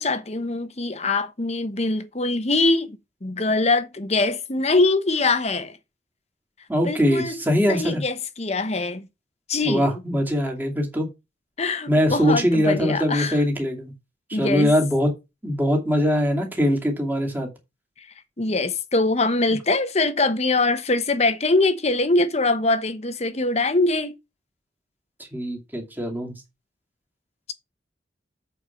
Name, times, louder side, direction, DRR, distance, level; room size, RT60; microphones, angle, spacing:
voice 1, 0.0-5.8 6.8-7.4 7.7-9.1 9.5-9.8 11.6-13.4 14.3-14.7 18.4-24.1, left 2 dB, 40° left, 1.0 m, -23 dB
voice 2, 6.7-8.0 9.6-11.1 11.9-13.9 14.3-15.1 15.4-17.5 19.5-19.6 25.2-26.3, equal, 10° right, 2.4 m, -22 dB
8.2 x 4.6 x 5.8 m
head